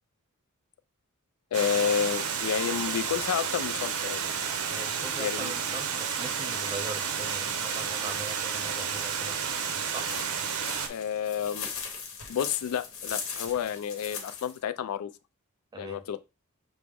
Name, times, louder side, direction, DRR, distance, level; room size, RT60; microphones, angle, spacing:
voice 1, 1.5-4.2 5.2-5.5 10.9-11.7 12.3-15.1 15.8-16.2, left 8 dB, 80° left, 0.3 m, -30 dB
Water, 1.5-10.9, right 6 dB, 80° right, 0.6 m, -31 dB
voice 2, 4.7-9.4 9.9-10.1 15.7-16.1, right 2 dB, 20° right, 0.4 m, -41 dB
sound 1, 7.2-14.6, left 5 dB, 60° left, 0.9 m, -40 dB
6.0 x 2.0 x 3.4 m
head